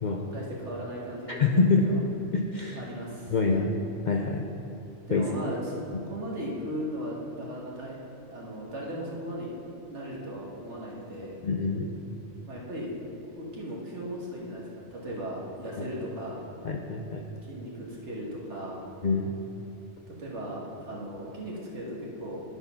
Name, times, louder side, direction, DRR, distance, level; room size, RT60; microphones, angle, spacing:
voice 1, 0.3-2.0 2.7-3.6 5.1-5.8 6.1-8.0 8.3-9.5 9.9-11.4 12.5-12.9 13.2-16.4 17.5-18.8 20.1-22.4, equal, 65° right, -4 dB, 1.9 m, -37 dB
voice 2, 1.3-1.8 2.3-2.8 3.3-3.7 4.1-4.4 5.1-5.2 11.4-11.9 15.8-15.9 16.6-17.2 19.0-19.3, left 4 dB, 55° left, 1 dB, 0.5 m, -25 dB
10.5 x 4.6 x 5.7 m, 3.0 s
omnidirectional pair, 1.3 m